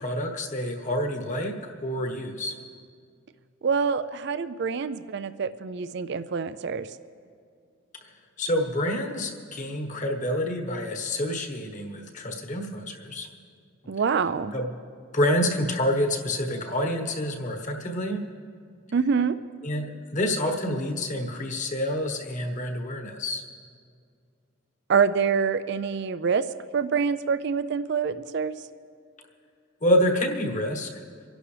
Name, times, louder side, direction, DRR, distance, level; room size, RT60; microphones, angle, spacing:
voice 1, 0.0-2.5 8.0-8.1 8.4-13.3 14.5-14.7 15.1-18.2 19.6-23.4 29.8-31.0, left 1 dB, 35° left, 2 dB, 1.3 m, -27 dB
voice 2, 3.6-6.9 13.9-14.5 18.9-19.4 24.9-26.4 26.7-28.5, right 6 dB, 55° right, 13 dB, 0.4 m, -26 dB
25.5 x 11.5 x 3.3 m, 2.3 s
head